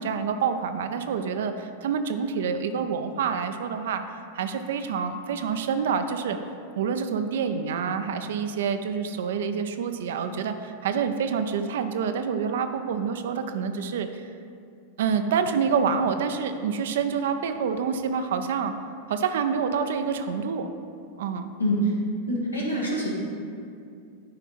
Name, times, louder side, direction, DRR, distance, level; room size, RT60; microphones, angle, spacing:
voice 1, 0.0-4.0 4.3-6.4 6.8-14.3 15.0-18.7 19.1-20.7 21.2-21.5, right 6 dB, 60° right, 8 dB, 0.5 m, -27 dB
voice 2, 21.6-21.9 22.3-23.1, right 1 dB, 85° left, -5 dB, 1.6 m, -25 dB
10.5 x 4.5 x 4.2 m, 2.4 s
figure-of-eight pair, 90°, 0 cm